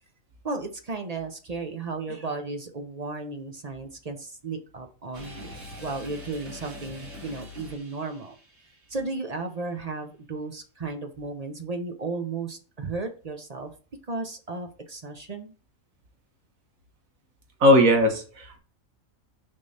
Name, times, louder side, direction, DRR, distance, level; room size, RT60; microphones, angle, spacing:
voice 1, 0.4-8.4 8.9-13.7 14.1-15.5, right 3 dB, 40° right, 5 dB, 0.7 m, -34 dB
sound 1, 5.1-8.9, left 2 dB, 70° right, 2.4 m, -43 dB
voice 2, 17.6-18.6, left 1 dB, 85° right, 4 dB, 1.7 m, -18 dB
6.3 x 3.8 x 4.1 m, 0.38 s
omnidirectional pair, 1.4 m